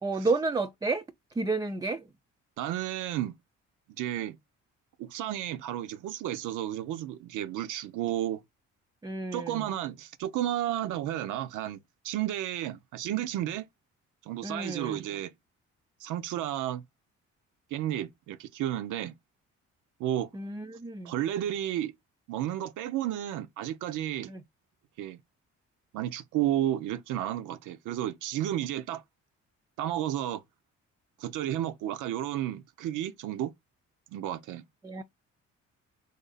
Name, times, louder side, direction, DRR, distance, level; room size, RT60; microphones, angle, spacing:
voice 1, 0.0-1.0 1.3-2.1 9.0-9.7 14.4-15.1 20.3-21.1 24.3-24.4 34.8-35.0, right 3 dB, 15° right, 0.3 m, -31 dB
voice 2, 2.6-3.4 4.0-4.4 5.0-8.4 9.3-13.7 14.2-15.3 16.0-16.8 17.7-19.1 20.0-20.3 21.0-21.9 22.3-24.3 25.0-25.2 25.9-29.0 29.8-30.4 31.2-33.5 34.1-34.6, right 12 dB, 85° right, 0.5 m, -32 dB
3.3 x 2.6 x 3.8 m
cardioid pair, 90°, 30 cm